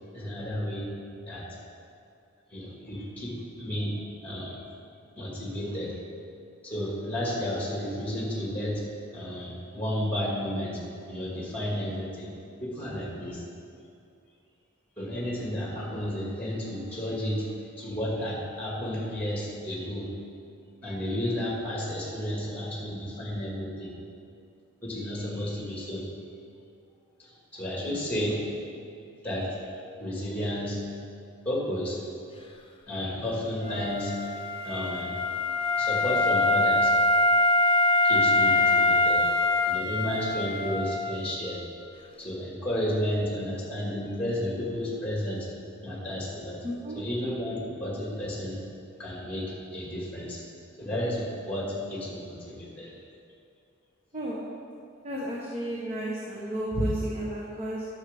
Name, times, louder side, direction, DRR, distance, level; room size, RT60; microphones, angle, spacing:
voice 1, 0.1-1.0 1.3-1.6 2.5-4.6 5.2-6.0 6.6-10.8 11.1-12.3 12.6-13.4 15.0-20.1 20.8-23.9 24.8-26.0 27.2-28.4 29.2-29.7 30.0-30.8 31.4-32.0 32.9-35.3 35.8-36.9 38.0-39.3 39.7-41.6 42.2-45.5 45.8-46.6 47.0-48.6 49.0-50.4 50.8-52.9, equal, 10° left, -5 dB, 2.0 m, -32 dB
Wind instrument woodwind instrument, 33.6-41.4, left 2 dB, 25° left, 0.6 m, -24 dB
voice 2, 46.6-47.0 54.1-54.5 55.0-57.8, right 1 dB, 30° right, -5 dB, 1.1 m, -32 dB
13.0 x 6.3 x 3.5 m, 2.5 s
head